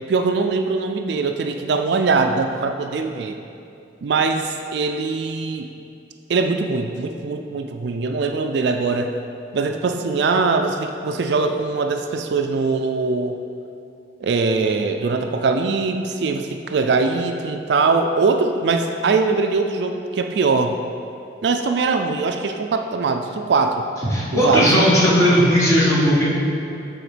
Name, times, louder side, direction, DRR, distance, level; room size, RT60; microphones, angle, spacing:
voice 1, 0.1-3.4 4.0-5.7 6.3-9.1 9.5-13.4 14.2-20.8 21.4-23.8 24.3-24.7, right 4 dB, 60° right, 5 dB, 0.4 m, -21 dB
voice 2, 24.1-26.2, equal, 15° left, -8 dB, 1.6 m, -16 dB
7.7 x 4.3 x 5.0 m, 2.6 s
head